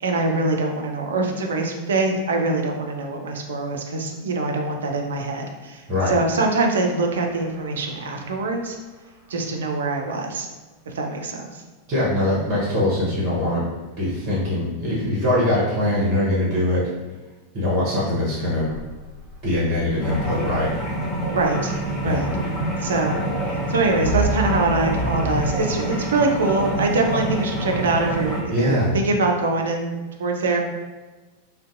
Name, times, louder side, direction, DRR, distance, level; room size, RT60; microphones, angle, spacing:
voice 1, 0.0-8.8 9.3-10.5 10.9-11.6 21.3-21.7 22.0-22.3 22.8-23.2 23.7-30.6, right 3 dB, 65° right, 2 dB, 0.3 m, -23 dB
sound 1, 7.0-9.5 12.0-12.1 18.7-25.6, right 2 dB, 45° left, 1.1 m, -33 dB
voice 2, 11.9-13.6 14.0-16.8 17.5-18.7 19.4-20.7 22.0-22.2 28.5-28.9, left 1 dB, 35° right, -7 dB, 0.9 m, -22 dB
sound 2, 20.0-28.4, right 1 dB, 25° left, 0.6 m, -27 dB
2.5 x 2.1 x 2.4 m, 1.2 s
figure-of-eight pair, 90°, 0 cm